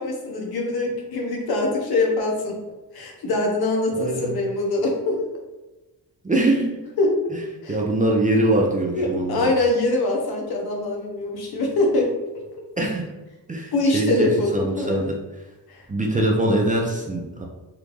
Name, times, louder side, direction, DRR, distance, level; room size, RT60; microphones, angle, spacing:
voice 1, 0.0-2.6 2.9-5.2 7.0-7.1 7.6-7.8 8.9-12.1 13.7-15.0 15.7-15.8, left 2 dB, 65° left, 0 dB, 0.9 m, -23 dB
voice 2, 3.9-4.3 6.2-6.8 7.3-7.4 7.7-9.5 12.8-13.1 13.5-15.2 15.9-17.4, right 1 dB, 20° right, -1 dB, 0.4 m, -23 dB
3.5 x 2.5 x 3.0 m, 1.1 s
wide cardioid pair, 130°, 40 cm